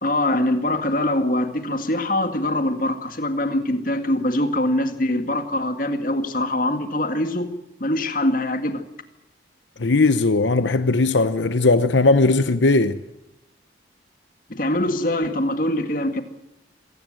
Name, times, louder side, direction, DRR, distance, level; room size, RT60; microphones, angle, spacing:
voice 1, 0.0-7.5 7.8-8.8 14.5-16.2, left 1 dB, 50° left, 2.1 m, -23 dB
voice 2, 9.8-13.0, left 3 dB, 85° left, 0.9 m, -18 dB
26.0 x 18.5 x 7.7 m
head